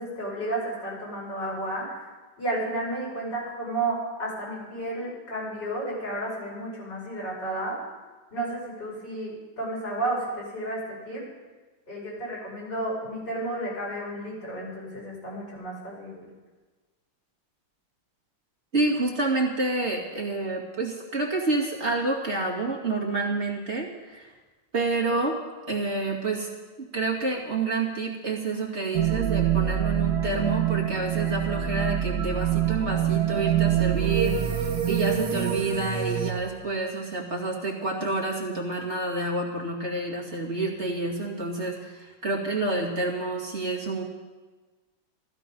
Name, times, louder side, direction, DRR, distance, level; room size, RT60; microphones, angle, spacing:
voice 1, 0.0-2.0 2.4-7.8 8.3-11.2 11.9-16.1, right 1 dB, 55° left, -5 dB, 6.1 m, -32 dB
voice 2, 18.7-24.3 24.7-25.4 25.7-26.5 26.8-44.0, right 3 dB, 30° right, -2 dB, 2.5 m, -28 dB
sound 1, 28.9-36.3, right 9 dB, 50° right, 1.8 m, -25 dB
15.0 x 14.5 x 5.4 m, 1.3 s
omnidirectional pair, 2.3 m